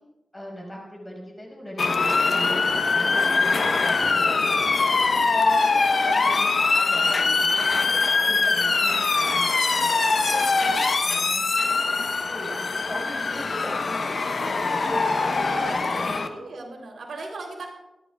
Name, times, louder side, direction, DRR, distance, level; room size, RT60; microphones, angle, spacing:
voice 1, 0.3-4.5 4.8-7.5 8.0-10.6 11.0-16.4, equal, 15° left, -2 dB, 4.8 m, -38 dB
Motor vehicle (road) / Siren, 1.8-16.3, left 4 dB, 50° left, 0.9 m, -22 dB
voice 2, 3.1-3.6 7.7-8.2 8.6-8.8 9.7-10.5 14.4-15.8 16.3-17.7, right 2 dB, 85° right, 0 dB, 3.2 m, -39 dB
24.5 x 11.0 x 2.3 m, 0.96 s
wide cardioid pair, 140°, 0 cm